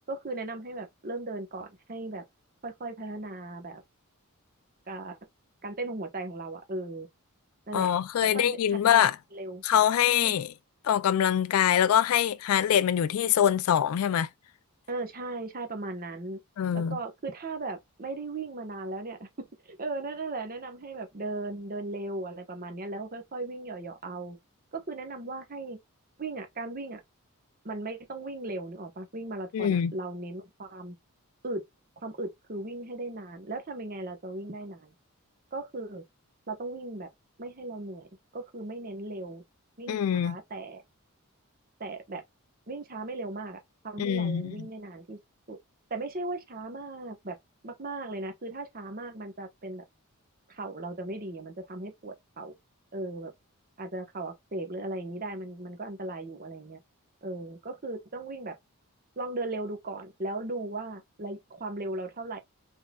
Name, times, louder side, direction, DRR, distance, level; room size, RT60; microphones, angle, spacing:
voice 1, 0.1-2.2 2.6-3.8 4.9-5.2 5.6-7.1 7.7-7.9 8.2-9.6 10.1-10.3 14.9-16.4 16.7-24.4 24.7-25.8 26.2-27.0 27.6-31.0 31.4-31.6 32.0-34.9 35.5-36.0 36.5-37.1 37.4-39.4 39.8-40.8 41.8-42.2 42.7-45.2 45.5-45.6 45.9-47.4 47.6-49.8 50.5-52.5 52.9-53.3 53.8-56.8 57.2-58.6 59.2-62.4, right 2 dB, 40° right, 1.0 m, -37 dB
voice 2, 7.7-9.2 9.6-10.5 10.8-14.3 16.6-17.0 29.5-29.9 39.9-40.4 44.0-44.6, left 9 dB, 70° left, 0.3 m, -24 dB
3.9 x 3.6 x 2.3 m
head